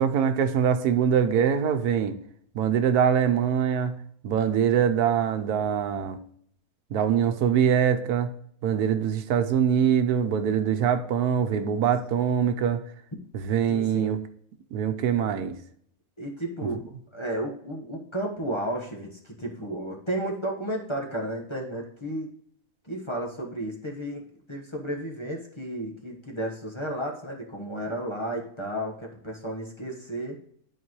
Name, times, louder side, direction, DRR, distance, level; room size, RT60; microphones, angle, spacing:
voice 1, 0.0-2.2 2.5-4.0 4.2-6.2 6.9-8.3 8.6-12.8 13.3-14.2 14.7-15.6 16.6-16.7, right 8 dB, 90° right, 9 dB, 1.3 m, -23 dB
voice 2, 13.7-14.1 16.2-16.8 17.1-22.3 22.8-24.2 24.5-30.4, right 1 dB, 20° left, -1 dB, 1.2 m, -33 dB
11.0 x 4.5 x 3.1 m, 0.65 s
omnidirectional pair, 1.6 m